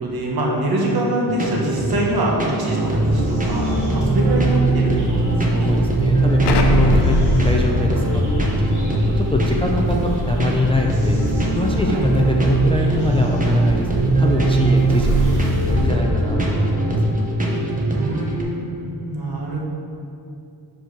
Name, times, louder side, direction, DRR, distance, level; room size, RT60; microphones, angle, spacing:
voice 1, 0.0-4.9 5.3-5.7 11.7-12.1 18.0-19.6, right 1 dB, 60° right, -2 dB, 1.4 m, -24 dB
sound 1, 1.3-18.4, right 2 dB, 20° right, 0.9 m, -21 dB
sound 2, 2.8-15.9, right 1 dB, 45° right, 1.7 m, -27 dB
voice 2, 5.5-8.7 9.0-11.2 11.6-15.4 15.7-17.1, left 2 dB, 15° left, 0 dB, 0.3 m, -24 dB
Explosion, 6.4-11.1, left 2 dB, 80° left, 0.7 m, -23 dB
5.2 x 5.0 x 5.9 m, 2.5 s
wide cardioid pair, 165°, 41 cm